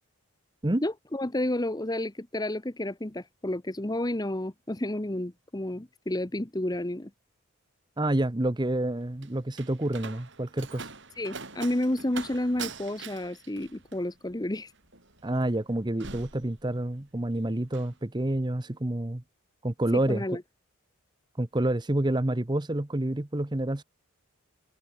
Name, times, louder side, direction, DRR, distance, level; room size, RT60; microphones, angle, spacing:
voice 1, 0.8-7.1 11.2-14.7 20.1-20.4, left 1 dB, 15° left, 0.9 m, -31 dB
voice 2, 8.0-10.9 15.2-19.2 19.6-20.2 21.4-23.8, right 1 dB, 20° right, 0.8 m, -28 dB
Slam, 8.7-17.2 17.5-17.9, right 5 dB, 55° right, 7.1 m, -44 dB
head